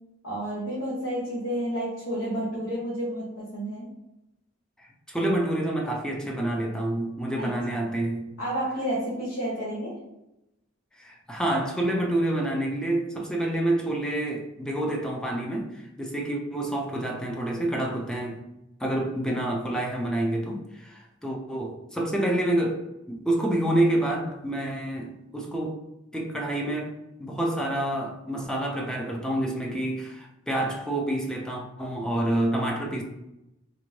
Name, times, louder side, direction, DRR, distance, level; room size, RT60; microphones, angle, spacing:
voice 1, 0.2-3.9 7.4-7.8 8.4-10.0, right 1 dB, 75° left, -7 dB, 1.0 m, -31 dB
voice 2, 5.1-8.3 11.0-18.4 18.8-22.8 23.1-25.8 26.1-26.9 27.2-33.0, right 1 dB, 5° left, 0 dB, 0.5 m, -28 dB
3.3 x 2.6 x 3.1 m, 0.89 s
head